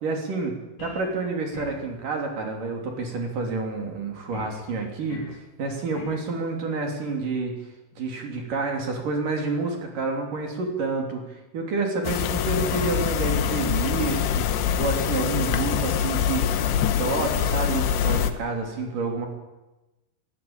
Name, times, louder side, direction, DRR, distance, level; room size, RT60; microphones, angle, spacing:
voice 1, 0.0-7.5 8.0-19.3, right 3 dB, 45° right, 2 dB, 4.2 m, -29 dB
sound 1, 0.8-1.2 1.5-1.9 4.3-4.6 5.1-5.4 5.9-6.3, left 6 dB, 45° left, 2.0 m, -41 dB
sound 2, 12.0-18.3, left 8 dB, 70° left, 2.9 m, -24 dB
22.0 x 17.0 x 8.8 m, 1.1 s
omnidirectional pair, 5.9 m